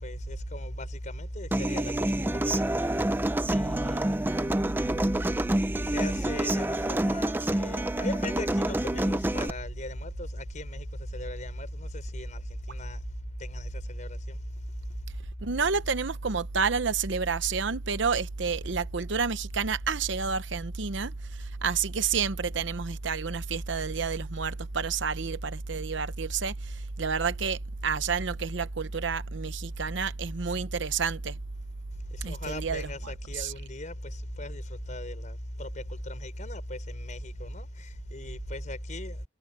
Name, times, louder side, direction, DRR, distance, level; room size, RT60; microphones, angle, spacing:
voice 1, 0.0-2.7 3.5-4.1 5.8-13.0 13.4-14.4 32.1-39.2, left 1 dB, 40° left, 6.0 m, -38 dB
Human voice / Acoustic guitar, 1.5-9.5, right 1 dB, 10° right, 0.5 m, -28 dB
voice 2, 15.4-31.4 32.2-32.9 33.3-33.5, right 5 dB, 65° right, 0.8 m, -29 dB
head